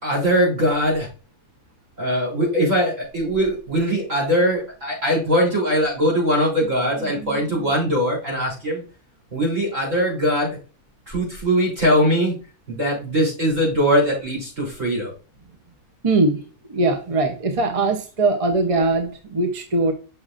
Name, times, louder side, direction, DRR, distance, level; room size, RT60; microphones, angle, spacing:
voice 1, 0.0-1.1 2.0-8.8 9.3-10.6 11.1-12.4 12.7-15.1, equal, 55° right, -3 dB, 3.9 m, -21 dB
voice 2, 7.0-7.7 16.0-16.4 16.7-19.9, right 3 dB, 35° right, 5 dB, 0.6 m, -21 dB
6.3 x 5.9 x 2.5 m, 0.34 s
omnidirectional pair, 1.6 m